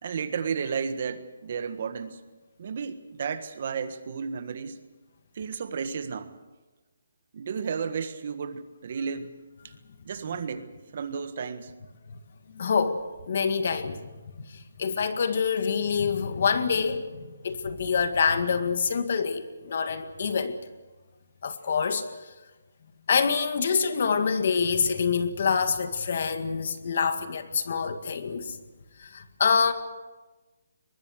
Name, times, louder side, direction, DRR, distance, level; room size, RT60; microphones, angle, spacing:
voice 1, 0.0-2.2 2.6-4.8 5.3-6.4 7.3-9.3 10.0-11.7, right 6 dB, 50° right, 1.5 m, -33 dB
voice 2, 12.5-14.0 14.5-20.6 21.4-22.0 23.1-28.6 29.0-29.7, left 6 dB, 55° left, 2.0 m, -26 dB
23.0 x 20.5 x 6.5 m
hypercardioid pair, 160°, 0 cm